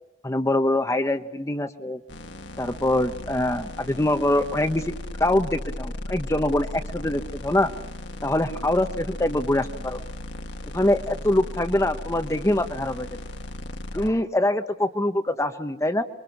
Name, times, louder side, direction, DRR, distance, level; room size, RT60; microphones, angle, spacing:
voice 1, 0.2-2.0 2.6-4.9 5.2-7.7 8.2-10.0 10.7-13.1 13.9-16.0, left 1 dB, 15° left, 7 dB, 1.0 m, -24 dB
sound 1, 2.1-14.1, left 1 dB, 65° left, 1.4 m, -36 dB
29.5 x 23.5 x 6.0 m, 0.95 s
head